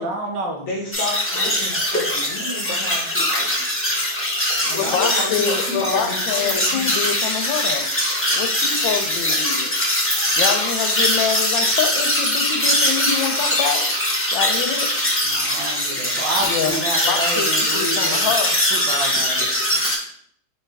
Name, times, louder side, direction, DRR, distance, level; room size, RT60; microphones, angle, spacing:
voice 1, 0.0-0.7 4.6-5.0 15.2-18.3 18.7-19.4, right 2 dB, 70° right, 2 dB, 1.4 m, -29 dB
voice 2, 0.6-3.6 4.6-6.9, left 1 dB, 60° left, -1 dB, 0.9 m, -30 dB
sound 1, 0.9-20.0, left 1 dB, 10° left, 0.5 m, -21 dB
voice 3, 4.7-7.9 8.3-9.7 10.4-13.9 14.3-14.9 16.4-18.6 19.1-19.2, left 7 dB, 80° left, 6 dB, 1.3 m, -26 dB
4.4 x 3.3 x 3.3 m, 0.65 s
omnidirectional pair, 2.1 m